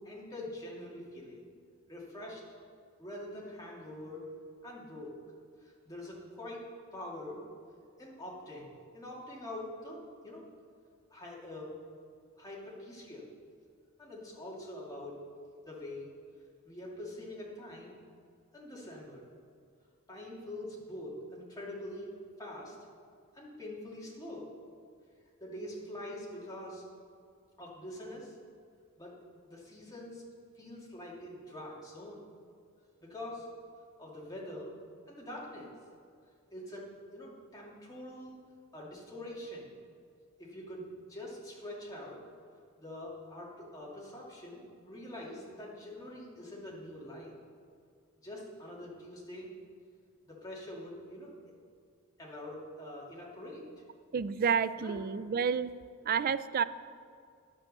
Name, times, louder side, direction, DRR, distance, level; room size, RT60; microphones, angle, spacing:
voice 1, 0.0-1.4 1.9-2.4 3.0-4.2 4.6-5.1 5.6-6.6 6.9-7.4 8.0-8.7 8.9-10.0 10.2-10.4 11.1-11.7 12.4-13.2 14.0-15.2 15.6-16.1 16.6-18.0 18.5-19.2 20.1-22.1 22.4-22.7 23.3-24.5 25.4-26.8 27.6-28.3 29.0-29.1 29.4-30.2 30.6-32.2 33.0-33.5 34.0-34.7 35.1-35.7 36.5-36.8 37.1-38.4 38.7-39.7 40.4-42.2 42.8-47.3 48.2-49.5 50.2-51.3 52.2-53.6 54.8-55.0, left 1 dB, 15° left, -5 dB, 2.4 m, -44 dB
voice 2, 54.1-55.7 56.0-56.6, right 6 dB, 40° right, 14 dB, 0.3 m, -29 dB
10.5 x 8.3 x 6.6 m, 2.3 s
head